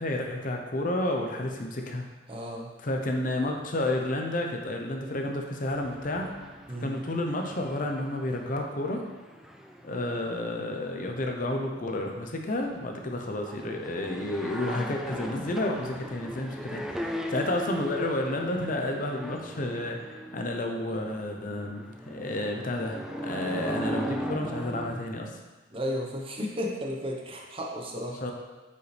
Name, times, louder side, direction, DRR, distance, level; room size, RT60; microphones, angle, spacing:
voice 1, 0.0-2.0 2.8-6.3 6.8-9.0 9.8-25.3 28.2-28.3, left 1 dB, 45° left, 2 dB, 0.7 m, -31 dB
voice 2, 2.3-2.7 6.7-7.0 25.7-28.2, equal, 30° right, 0 dB, 1.0 m, -33 dB
sound 1, 5.6-25.0, equal, 5° right, 0.3 m, -39 dB
8.2 x 5.5 x 3.3 m, 1.3 s
head